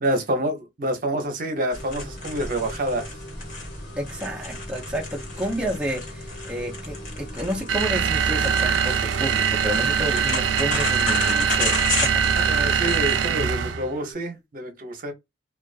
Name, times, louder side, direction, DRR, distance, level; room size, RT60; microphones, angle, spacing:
voice 1, 0.0-3.1 12.3-15.1, right 1 dB, 50° right, 0.7 m, -27 dB
sound 1, 1.7-13.3, left 2 dB, 50° left, 1.4 m, -33 dB
sound 2, 1.8-14.1, left 1 dB, 85° left, 0.8 m, -46 dB
voice 2, 4.0-12.2, equal, 5° right, 0.5 m, -31 dB
sound 3, 7.7-13.9, right 7 dB, 80° right, 0.3 m, -22 dB
2.4 x 2.3 x 2.3 m
head